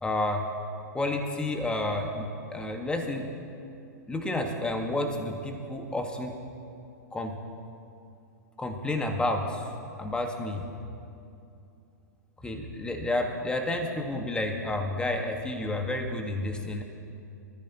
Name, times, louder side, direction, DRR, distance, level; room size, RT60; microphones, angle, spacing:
voice 1, 0.0-0.5 0.9-3.3 4.1-6.3 7.1-7.4 8.6-9.7 10.0-10.7 12.4-16.8, left 2 dB, 10° left, 3 dB, 1.7 m, -30 dB
24.0 x 14.0 x 3.1 m, 2.6 s
hypercardioid pair, 110°, 10 cm